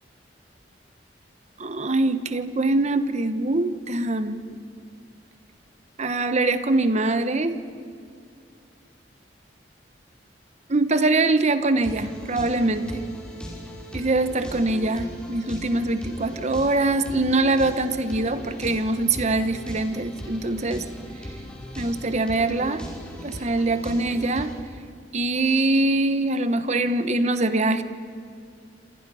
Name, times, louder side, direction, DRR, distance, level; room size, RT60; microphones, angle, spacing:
voice 1, 1.6-4.4 6.0-7.6 10.7-13.1 13.9-20.9 21.8-22.9 23.2-24.5 25.1-27.8, right 2 dB, 40° right, 11 dB, 1.1 m, -23 dB
sound 1, 11.8-24.5, equal, 5° left, 5.2 m, -38 dB
28.0 x 26.5 x 5.7 m, 2.3 s
head